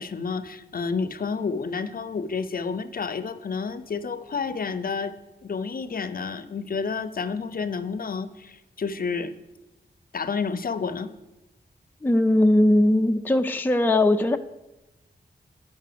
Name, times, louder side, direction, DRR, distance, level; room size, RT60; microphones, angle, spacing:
voice 1, 0.0-5.1 5.4-9.3 10.1-11.1, left 5 dB, 55° left, 12 dB, 0.6 m, -30 dB
voice 2, 12.0-14.4, left 1 dB, 10° left, 6 dB, 0.4 m, -19 dB
10.0 x 5.5 x 6.8 m, 0.99 s
wide cardioid pair, 105°, 18 cm